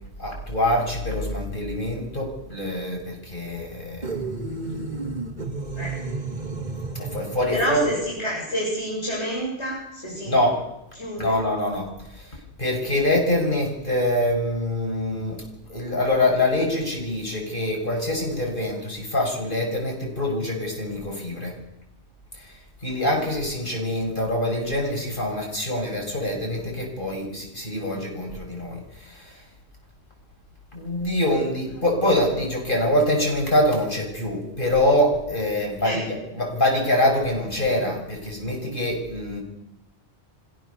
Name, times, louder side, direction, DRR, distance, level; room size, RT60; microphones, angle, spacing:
voice 1, 0.2-4.6 7.0-7.9 10.3-10.6 11.2-11.9 12.1-15.4 15.7-21.5 22.3-22.5 22.8-29.4 30.7-36.0 36.4-39.4, left 1 dB, 50° left, 0 dB, 7.2 m, -25 dB
sound 1, 4.0-7.5, right 3 dB, 40° right, 2.1 m, -32 dB
voice 2, 7.5-10.4 11.0-11.4 31.7-31.8 35.8-36.0, equal, 90° left, -4 dB, 7.8 m, -28 dB
26.5 x 16.5 x 7.0 m, 0.87 s
omnidirectional pair, 1.1 m